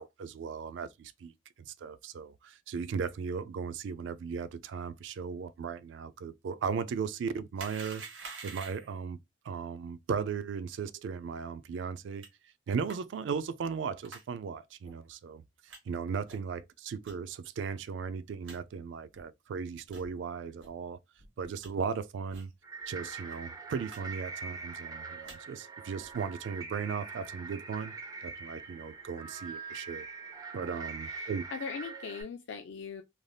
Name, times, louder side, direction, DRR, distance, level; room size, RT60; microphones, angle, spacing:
voice 1, 0.0-9.2 9.4-12.2 12.7-15.4 15.9-21.0 21.4-22.5 22.9-27.9 28.2-30.1 30.5-31.4, right 6 dB, 70° right, 0.3 m, -37 dB
sound 1, 7.5-9.0 12.2-12.3 12.9-13.0 14.0-14.2 14.8-14.9 15.7-15.8 16.3-16.5 17.0-17.1 17.7-17.8 18.0-18.1 18.4-18.6 19.1-19.2 19.8-20.1 20.6-20.7 21.2-21.7 22.3-22.5 22.8-22.9 23.2-23.4 23.9-24.0 24.2-24.6 25.0-25.4 25.9-26.2, right 4 dB, 85° right, 1.1 m, -47 dB
sound 2, 22.6-32.2, right 4 dB, 20° right, 0.6 m, -43 dB
voice 2, 31.1-33.0, left 6 dB, 70° left, 0.4 m, -40 dB
3.3 x 2.5 x 2.2 m
head